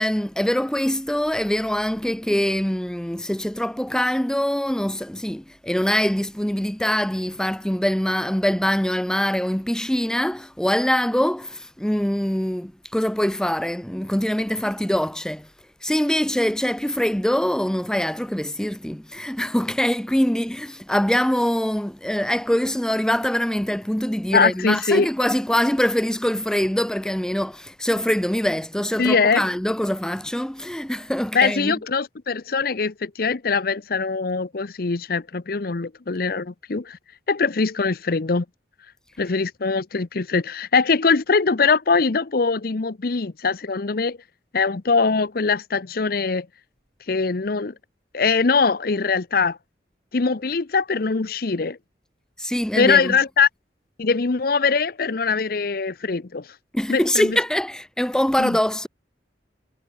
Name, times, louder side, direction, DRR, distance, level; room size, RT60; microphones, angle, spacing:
voice 1, 0.0-15.5 15.8-31.7 52.4-53.1 56.7-58.9, equal, 5° left, 0.5 m, -23 dB
voice 2, 24.3-25.1 29.0-29.5 31.3-37.0 37.3-38.4 39.2-44.2 44.5-46.5 47.1-47.7 48.1-49.6 50.1-51.8 52.8-53.5 54.0-56.5 56.9-57.4 58.4-58.6, left 4 dB, 55° left, 0.7 m, -22 dB
head